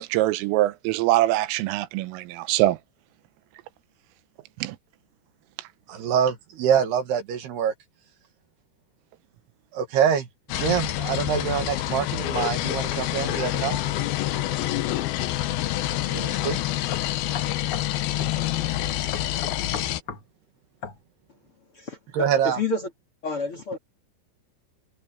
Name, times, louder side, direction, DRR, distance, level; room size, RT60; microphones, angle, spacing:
voice 1, 0.0-2.8 4.6-4.8, right 16 dB, 90° right, 3.6 m, -23 dB
voice 2, 5.9-7.7 9.7-10.3 10.5-13.8 16.1-16.6 22.1-22.6, right 8 dB, 60° right, 3.4 m, -25 dB
sound 1, 10.5-20.0, left 14 dB, 80° left, 2.1 m, -27 dB
sound 2, 15.7-15.9 16.4-16.5 16.9-17.9 18.2-18.4 19.1-20.3 20.8-21.0, left 6 dB, 50° left, 1.6 m, -36 dB
voice 3, 21.7-22.9 23.2-23.8, left 3 dB, 35° left, 2.7 m, -29 dB
omnidirectional pair, 5.7 m